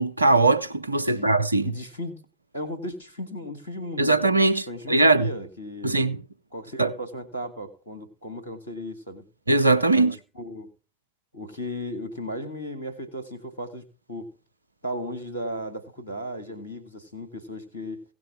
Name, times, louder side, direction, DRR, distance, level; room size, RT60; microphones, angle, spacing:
voice 1, 0.0-1.7 4.0-5.3 5.8-6.2 6.8-6.9 9.5-10.2, right 2 dB, 90° right, 0.5 m, -20 dB
voice 2, 1.6-2.2 2.5-4.2 4.7-6.1 6.5-9.2 9.9-10.7 11.3-14.3 14.8-18.0, equal, 85° left, 2.2 m, -36 dB
17.0 x 6.1 x 4.9 m
figure-of-eight pair, 60°, 0 cm